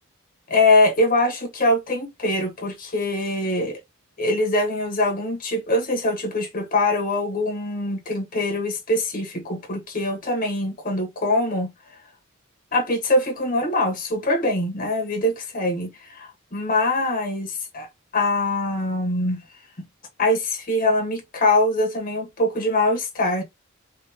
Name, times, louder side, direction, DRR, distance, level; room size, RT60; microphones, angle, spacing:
voice 1, 0.5-3.8 4.2-11.7 12.7-17.9 18.1-19.4 20.2-23.4, left 2 dB, 40° left, 1.4 m, -23 dB
4.5 x 3.5 x 2.9 m
head